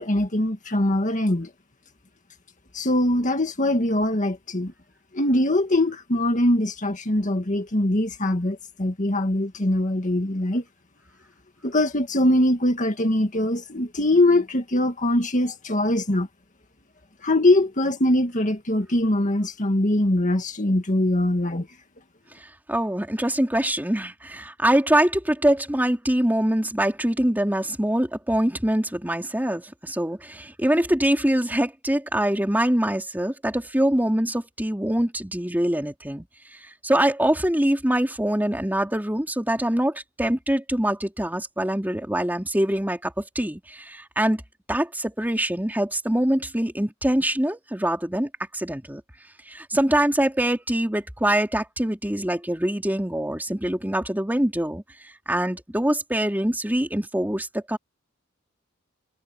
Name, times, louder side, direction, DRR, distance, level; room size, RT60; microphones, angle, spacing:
voice 1, 0.0-1.5 2.7-4.7 5.1-10.6 11.6-16.3 17.2-21.7, left 1 dB, 40° left, 1.9 m, -22 dB
voice 2, 22.7-36.3 36.8-44.4 44.7-49.0 49.5-54.8 55.3-57.8, right 1 dB, 10° right, 3.1 m, -24 dB
head